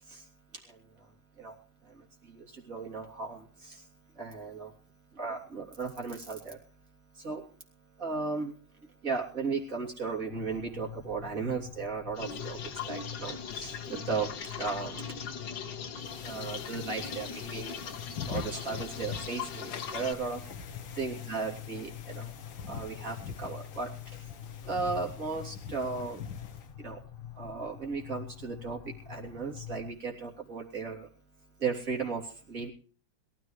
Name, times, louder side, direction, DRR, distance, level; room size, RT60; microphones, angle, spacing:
voice 1, 2.3-3.8 4.2-4.7 5.2-6.6 7.2-7.4 8.0-8.5 9.0-12.6 12.8-15.1 16.2-17.8 18.3-20.4 21.0-22.3 22.7-23.9 24.7-26.2 26.8-27.0 27.4-28.8 29.1-31.1 31.6-32.7, right 4 dB, 45° right, 0 dB, 3.6 m, -35 dB
sound 1, 10.3-29.9, left 10 dB, 30° left, 1.3 m, -45 dB
sound 2, 12.1-20.1, left 6 dB, 70° left, 2.0 m, -40 dB
sound 3, 16.0-26.7, left 6 dB, 90° left, 1.9 m, -44 dB
22.0 x 13.5 x 3.2 m, 0.40 s
omnidirectional pair, 2.0 m